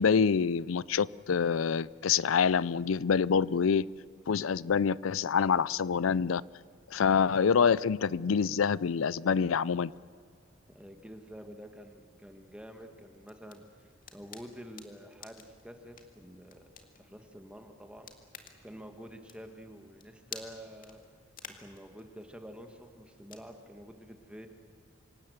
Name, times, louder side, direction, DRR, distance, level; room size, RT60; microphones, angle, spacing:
voice 1, 0.0-3.9 4.3-6.4 6.9-9.9, left 6 dB, 90° left, 21 dB, 0.5 m, -26 dB
voice 2, 10.7-13.6 14.1-16.7 17.0-18.1 18.6-21.0 21.6-24.5, equal, 5° right, 5 dB, 1.5 m, -48 dB
sound 1, 12.8-23.5, left 7 dB, 45° left, 2.0 m, -53 dB
26.5 x 17.5 x 8.0 m, 2.3 s
head